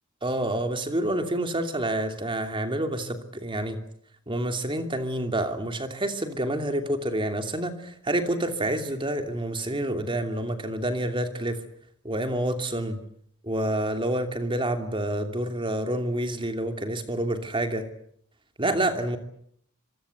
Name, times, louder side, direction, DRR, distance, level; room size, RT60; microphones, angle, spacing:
voice 1, 0.2-3.8 4.3-11.6 12.0-13.0 13.4-17.9 18.6-19.2, right 1 dB, 25° right, 6 dB, 2.9 m, -28 dB
26.0 x 23.0 x 8.2 m, 0.67 s
head